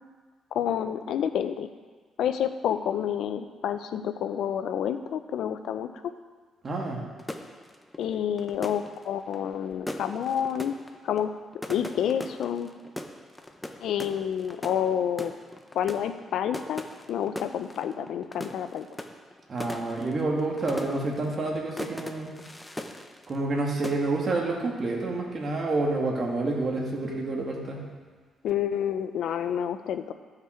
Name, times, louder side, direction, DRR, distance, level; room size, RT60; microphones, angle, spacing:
voice 1, 0.5-1.7 2.2-6.1 8.0-10.8 11.0-11.3 11.7-12.7 13.8-15.3 15.7-16.8 17.1-18.9 28.4-30.1, left 9 dB, 75° left, 10 dB, 0.6 m, -29 dB
voice 2, 6.6-7.0 19.5-22.3 23.3-27.8, right 2 dB, 40° right, -1 dB, 2.2 m, -28 dB
sound 1, 7.2-23.6 23.8-24.4, left 1 dB, 10° left, 0.7 m, -40 dB
14.0 x 5.9 x 4.5 m, 1.5 s
cardioid pair, 90°, 0 cm